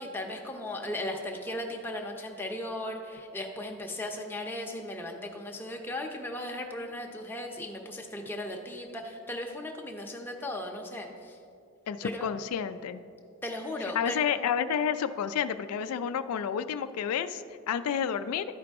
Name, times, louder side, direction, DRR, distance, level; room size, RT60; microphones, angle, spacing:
voice 1, 0.0-11.4 12.0-12.3 13.4-14.2, left 1 dB, 10° left, 1 dB, 0.6 m, -37 dB
voice 2, 11.9-13.0 13.9-18.4, left 8 dB, 90° left, 11 dB, 0.3 m, -30 dB
12.0 x 4.8 x 3.5 m, 2.5 s
head